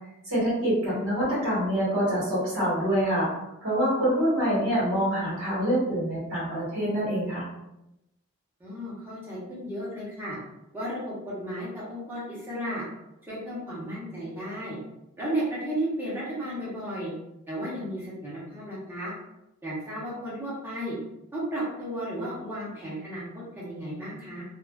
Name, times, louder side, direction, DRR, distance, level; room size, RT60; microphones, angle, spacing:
voice 1, 0.2-3.3 3.6-7.5, equal, 85° right, -9 dB, 1.3 m, -25 dB
voice 2, 8.6-10.4 10.7-12.8 13.2-14.8 15.2-17.1 17.5-19.1 19.6-21.0 21.3-24.4, right 1 dB, 10° right, -8 dB, 0.8 m, -34 dB
2.4 x 2.4 x 2.3 m, 0.89 s
head